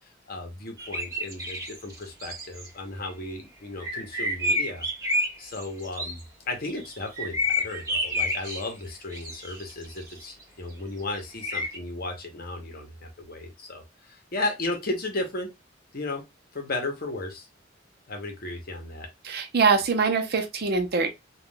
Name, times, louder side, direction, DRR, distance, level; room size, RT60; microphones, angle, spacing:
voice 1, 0.3-4.9 5.4-15.5 15.9-16.2 16.5-17.5 18.1-19.1, left 2 dB, 50° left, 0.8 m, -34 dB
sound 1, 0.8-2.7 3.8-6.2 6.7-8.7 9.1-10.4 11.4-11.8, left 1 dB, 20° right, 1.7 m, -29 dB
voice 2, 19.2-21.1, right 4 dB, 55° right, 0.6 m, -23 dB
3.5 x 2.3 x 2.2 m
head